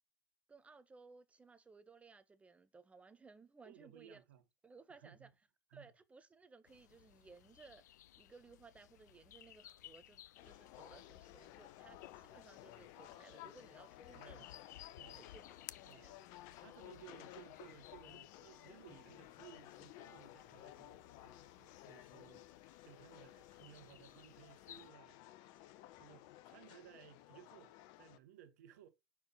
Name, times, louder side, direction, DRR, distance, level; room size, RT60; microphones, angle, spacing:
voice 1, 0.5-4.2 4.6-5.3 5.7-14.6 15.2-15.5 15.8-16.2, right 4 dB, 15° right, 0.7 m, -60 dB
voice 2, 3.6-4.4 4.9-5.3 5.7-5.9 14.1-14.6 15.0-15.4 15.8-16.2 16.6-22.5 22.8-25.2 26.0-28.9, right 11 dB, 55° right, 1.2 m, -60 dB
sound 1, 6.7-24.9, left 13 dB, 65° left, 0.3 m, -60 dB
sound 2, 10.4-28.2, left 14 dB, 45° left, 0.7 m, -56 dB
5.6 x 4.6 x 5.8 m
figure-of-eight pair, 95°, 10 cm